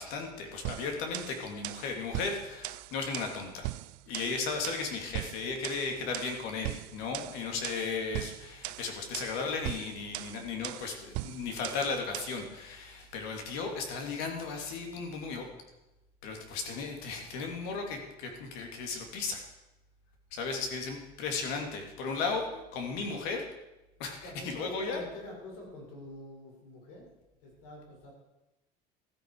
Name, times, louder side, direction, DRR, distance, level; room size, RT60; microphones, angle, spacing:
voice 1, 0.0-3.7 4.1-15.5 16.2-19.4 20.3-23.5 24.0-25.0, left 4 dB, 75° left, 3 dB, 3.0 m, -35 dB
sound 1, 0.6-12.5, right 22 dB, 90° right, 0.4 m, -40 dB
voice 2, 4.2-4.5 7.3-7.6 24.2-27.1 27.4-28.1, left 1 dB, 90° left, -1 dB, 6.8 m, -46 dB
15.0 x 14.0 x 5.0 m, 0.97 s
cardioid pair, 170°, 16 cm